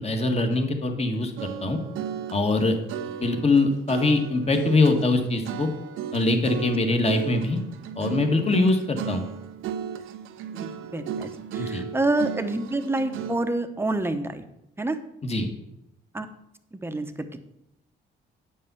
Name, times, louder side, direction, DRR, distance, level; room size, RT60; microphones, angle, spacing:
voice 1, 0.0-1.8 2.3-2.8 3.2-5.7 6.1-7.6 8.0-9.2 11.6-11.8 15.2-15.5, left 2 dB, 30° left, 5 dB, 1.7 m, -23 dB
sound 1, 1.4-13.5, right 9 dB, 85° right, 0.8 m, -35 dB
voice 2, 10.5-14.4 14.8-15.0 16.1-16.3 16.7-17.3, right 2 dB, 10° right, 8 dB, 1.0 m, -28 dB
8.7 x 5.5 x 6.9 m, 0.84 s
cardioid pair, 90°, 20 cm